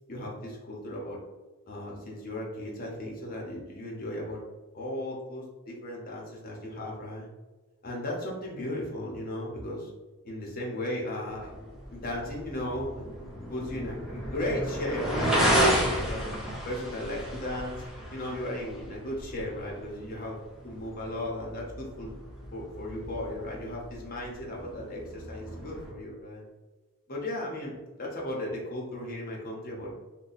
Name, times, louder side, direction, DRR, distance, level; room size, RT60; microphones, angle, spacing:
voice 1, 0.1-1.2 1.7-4.4 4.7-7.3 7.8-9.9 10.2-11.5 11.9-13.2 13.5-16.2 16.6-17.8 18.1-20.4 20.6-22.1 22.5-26.4 27.1-29.9, left 1 dB, 40° left, -3 dB, 0.8 m, -36 dB
sound 1, 11.3-25.9, equal, ahead, 0.6 m, -33 dB
2.7 x 2.2 x 4.0 m, 1.2 s
head